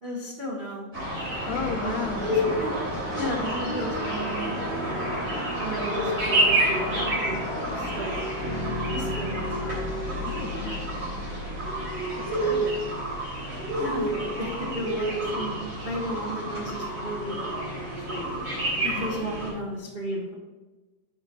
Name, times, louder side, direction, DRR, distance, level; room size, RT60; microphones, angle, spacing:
voice 1, 0.0-0.9 1.8-1.9 2.3-2.7 3.2-4.6 5.6-7.4 7.8-8.2 8.9-9.8 13.8-18.4 18.9-20.3, equal, 85° right, -4 dB, 0.5 m, -34 dB
sound 1, 0.9-19.5, right 1 dB, 40° right, 3.9 m, -29 dB
voice 2, 1.5-2.3 10.2-11.0 12.2-12.8 18.8-19.1, left 6 dB, 75° left, 3 dB, 1.6 m, -34 dB
Bass guitar, 8.4-12.9, right 4 dB, 70° right, 1.9 m, -39 dB
7.2 x 5.6 x 5.2 m, 1.2 s
omnidirectional pair, 3.6 m